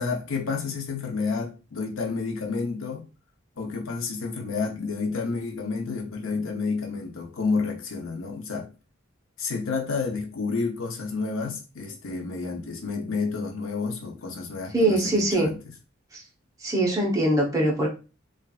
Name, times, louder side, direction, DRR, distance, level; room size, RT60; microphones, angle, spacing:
voice 1, 0.0-3.0 3.6-8.7 9.4-15.6, left 4 dB, 90° left, 0.7 m, -30 dB
voice 2, 14.7-15.5 16.1-16.2 16.6-17.9, right 1 dB, 15° right, 0.8 m, -22 dB
3.1 x 2.5 x 2.4 m
head